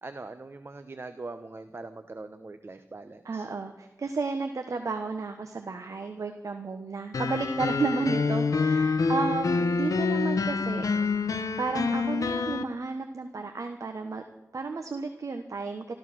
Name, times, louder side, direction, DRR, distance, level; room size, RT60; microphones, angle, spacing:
voice 1, 0.0-3.5 9.0-9.1, right 3 dB, 45° right, 9 dB, 1.0 m, -42 dB
voice 2, 3.2-10.8 11.6-14.2 14.5-15.9, right 4 dB, 70° right, 5 dB, 1.4 m, -32 dB
sound 1, 7.1-12.6, left 4 dB, 80° left, 1.0 m, -27 dB
14.5 x 14.0 x 6.2 m, 0.98 s
wide cardioid pair, 70°, 6 cm